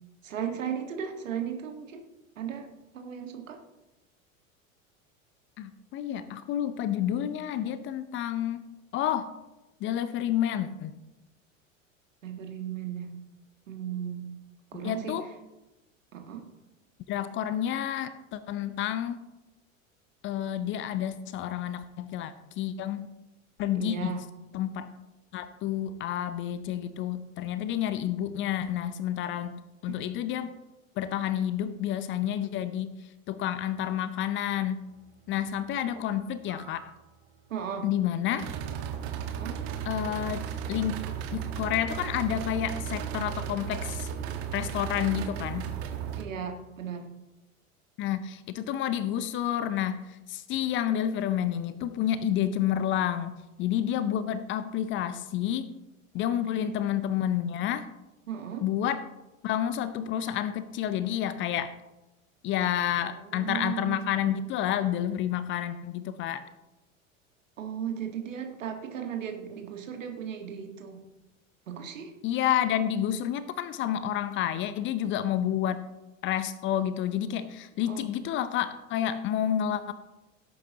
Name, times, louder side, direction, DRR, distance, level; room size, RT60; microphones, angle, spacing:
voice 1, 0.2-2.1 2.4-3.6 12.2-13.1 13.7-14.3 14.7-15.2 16.1-16.5 23.8-24.2 37.5-37.9 39.4-39.6 46.2-47.1 56.5-56.7 58.3-58.6 63.0-64.1 67.6-71.0 71.7-72.1 77.9-78.1, right 8 dB, 70° right, 5 dB, 1.7 m, -36 dB
voice 2, 5.6-8.6 8.9-9.3 9.8-10.9 14.8-15.3 17.1-19.2 20.2-23.1 23.6-24.2 24.5-24.9 25.3-30.6 31.0-32.9 33.3-34.8 35.3-36.8 37.8-38.5 39.9-40.4 40.7-41.0 41.3-44.1 44.5-45.7 48.0-50.0 50.3-55.7 56.1-57.9 58.6-59.1 59.4-61.7 62.4-66.4 72.2-75.8 76.2-79.9, left 10 dB, 30° left, 14 dB, 0.6 m, -29 dB
sound 1, 36.5-36.9 38.4-46.2, right 8 dB, 45° right, 1.4 m, -35 dB
17.0 x 8.5 x 2.9 m, 1.0 s
figure-of-eight pair, 80°, 41 cm